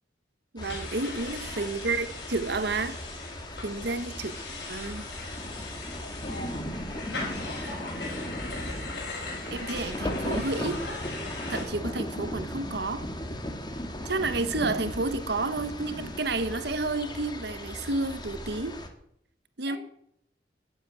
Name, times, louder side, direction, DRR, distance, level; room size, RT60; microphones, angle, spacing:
voice 1, 0.5-3.0 3.6-4.3 4.7-5.1 9.5-10.8 11.5-13.1 14.0-18.8 19.6-19.8, right 3 dB, 65° right, 1.1 m, -30 dB
sound 1, 0.6-11.6, left 3 dB, 70° left, 6.2 m, -40 dB
sound 2, 0.6-18.9, left 1 dB, 25° left, 1.9 m, -37 dB
voice 2, 1.2-1.8 3.7-4.1 6.0-6.6 6.9-7.9 19.7-19.8, left 1 dB, 50° left, 7.4 m, -44 dB
14.5 x 8.0 x 9.4 m
head